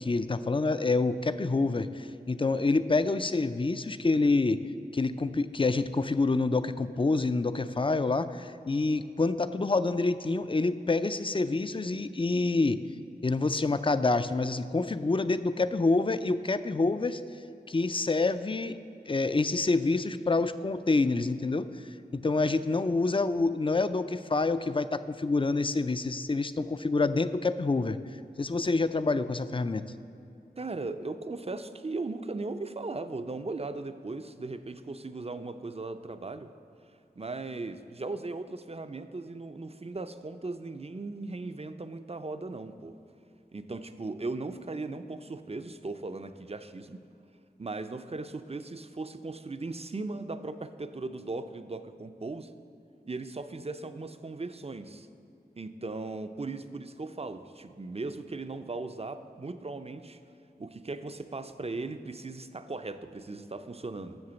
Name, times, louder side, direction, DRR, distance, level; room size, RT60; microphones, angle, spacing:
voice 1, 0.0-4.6 4.9-12.8 13.2-17.2 17.7-18.8 19.1-21.7 22.1-28.0 28.4-29.9, left 3 dB, 30° left, 13 dB, 0.4 m, -27 dB
voice 2, 30.6-36.5 37.2-43.0 43.5-47.0 47.6-52.5 53.0-55.1 55.6-60.2 60.6-64.2, right 3 dB, 35° right, 10 dB, 0.5 m, -38 dB
7.9 x 6.7 x 6.9 m, 2.7 s
wide cardioid pair, 40°, 17 cm